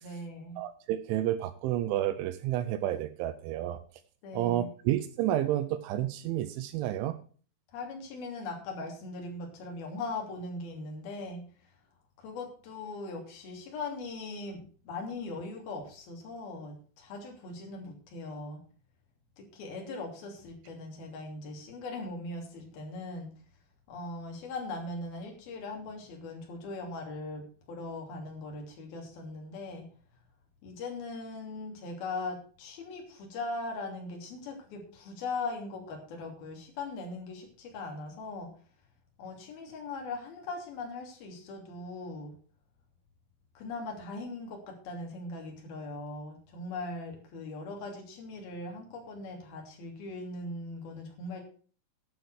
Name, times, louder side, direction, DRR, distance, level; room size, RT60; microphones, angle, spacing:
voice 1, 0.0-0.6 4.2-4.8 7.7-11.7 12.2-18.6 19.4-23.3 23.9-29.9 30.6-38.5 39.2-42.3 43.5-51.4, left 3 dB, 50° left, 1 dB, 4.5 m, -40 dB
voice 2, 0.6-3.8 4.3-7.2, right 12 dB, 80° right, 12 dB, 2.9 m, -30 dB
11.5 x 7.5 x 6.4 m, 0.42 s
omnidirectional pair, 5.9 m